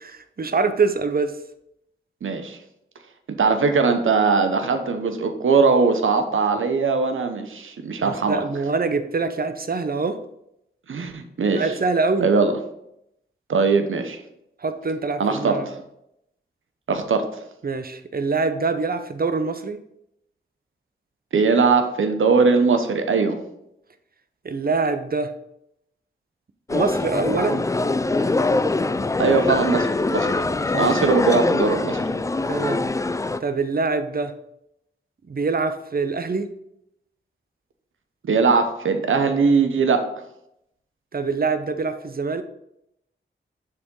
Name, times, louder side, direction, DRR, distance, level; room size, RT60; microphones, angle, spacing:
voice 1, 0.0-1.4 8.0-10.2 11.5-12.3 14.6-15.7 17.6-19.8 24.4-25.3 26.7-27.7 32.5-32.9 33.4-34.3 35.3-36.5 41.1-42.4, right 4 dB, 45° right, 10 dB, 0.7 m, -24 dB
voice 2, 2.2-2.6 3.3-8.4 10.9-11.7 12.2-12.6 13.5-14.2 15.2-15.7 16.9-17.3 21.3-23.4 29.2-30.4 30.7-32.0 38.2-40.0, right 4 dB, 80° right, 7 dB, 0.9 m, -20 dB
sound 1, 26.7-33.4, left 2 dB, 15° left, 0.3 m, -23 dB
6.8 x 3.6 x 5.3 m, 0.79 s
cardioid pair, 50°, 21 cm